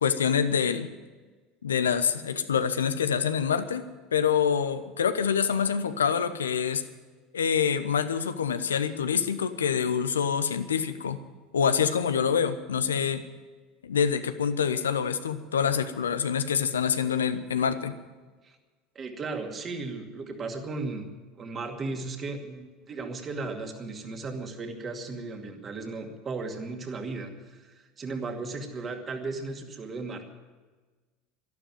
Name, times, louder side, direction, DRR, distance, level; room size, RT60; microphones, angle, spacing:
voice 1, 0.0-0.9 1.6-6.8 7.3-11.2 11.5-13.2 13.8-17.9, left 7 dB, 80° left, 11 dB, 0.9 m, -26 dB
voice 2, 18.9-21.1 21.4-30.3, right 3 dB, 30° right, 4 dB, 2.4 m, -36 dB
12.5 x 12.0 x 9.2 m, 1.3 s
figure-of-eight pair, 75°, 0 cm